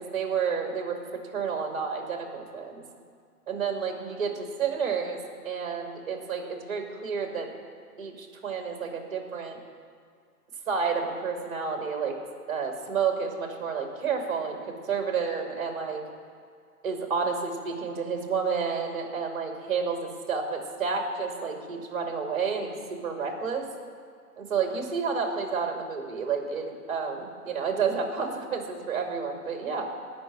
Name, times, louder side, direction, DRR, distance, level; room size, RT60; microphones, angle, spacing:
voice 1, 0.0-2.8 3.5-4.3 4.6-5.2 5.4-7.5 8.0-9.6 10.7-12.2 12.5-16.0 16.8-22.7 23.0-23.6 24.4-29.9, right 5 dB, 35° right, 2 dB, 2.4 m, -30 dB
17.5 x 6.1 x 8.8 m, 2.2 s
hypercardioid pair, 155°, 46 cm